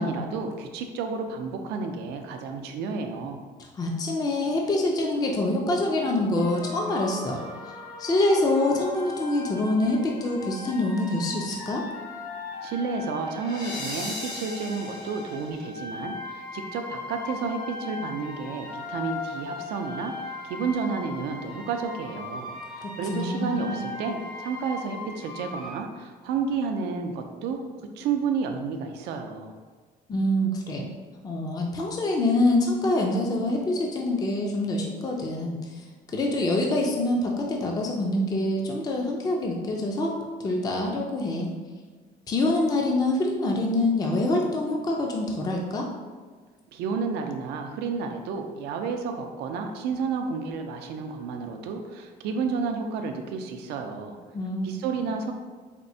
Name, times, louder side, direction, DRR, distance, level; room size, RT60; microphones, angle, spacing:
voice 1, 0.0-3.4 12.6-20.1 20.4-27.6 28.0-29.5 46.7-54.2 54.6-55.3, right 5 dB, 80° right, 4 dB, 0.4 m, -31 dB
voice 2, 3.8-7.4 7.6-7.7 8.0-11.8 22.8-23.8 30.1-30.9 31.2-35.6 36.1-40.1 40.4-41.5 42.3-45.9 54.3-54.7, left 2 dB, 25° left, 0 dB, 0.4 m, -25 dB
sound 1, 6.3-25.7, left 3 dB, 80° left, 0.9 m, -38 dB
4.2 x 2.0 x 2.6 m, 1.5 s
cardioid pair, 110°, 17 cm